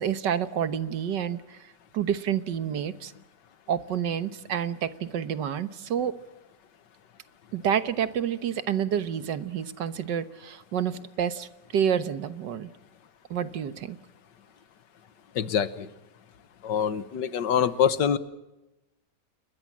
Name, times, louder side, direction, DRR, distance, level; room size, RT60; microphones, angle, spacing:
voice 1, 0.0-1.6 1.9-3.1 3.7-6.2 7.5-12.7 13.3-14.0, right 8 dB, 85° right, 13 dB, 1.8 m, -29 dB
voice 2, 15.4-15.9 16.6-18.2, left 8 dB, 85° left, 14 dB, 1.8 m, -25 dB
29.5 x 21.5 x 7.4 m, 0.97 s
omnidirectional pair, 1.9 m